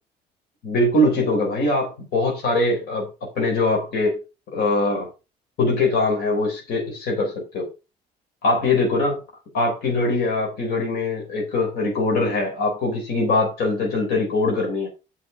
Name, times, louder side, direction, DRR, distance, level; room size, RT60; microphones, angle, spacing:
voice 1, 0.6-3.1 3.4-4.2 4.5-5.1 5.6-7.7 8.4-9.2 9.5-14.9, left 2 dB, 70° left, 0 dB, 3.8 m, -22 dB
8.5 x 5.9 x 4.5 m, 0.29 s
cardioid pair, 110°, 17 cm